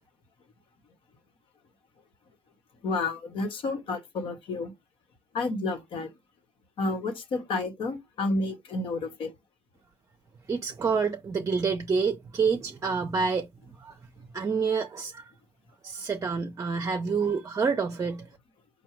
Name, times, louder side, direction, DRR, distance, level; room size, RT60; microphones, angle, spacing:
voice 1, 2.8-4.7 5.3-6.1 6.8-9.3, left 3 dB, 65° left, 1.2 m, -30 dB
voice 2, 10.5-13.5 13.8-14.0 14.3-15.3 15.8-18.3, right 5 dB, 35° right, 0.6 m, -28 dB
4.7 x 2.3 x 4.4 m
supercardioid pair, 70°, 10 cm